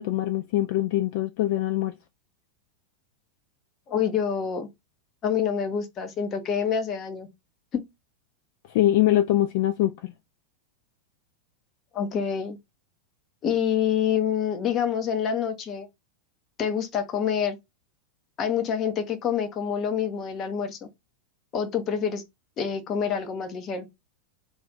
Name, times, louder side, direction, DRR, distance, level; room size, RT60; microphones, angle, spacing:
voice 1, 0.0-1.9 8.7-10.1, left 14 dB, 50° left, 0.3 m, -23 dB
voice 2, 3.9-4.7 5.2-7.3 7.7-7.8 11.9-12.6 13.4-15.9 16.6-17.6 18.4-20.8 21.5-22.2 22.6-23.9, left 8 dB, 30° left, 0.7 m, -27 dB
2.4 x 2.3 x 3.4 m
figure-of-eight pair, 90°, 0 cm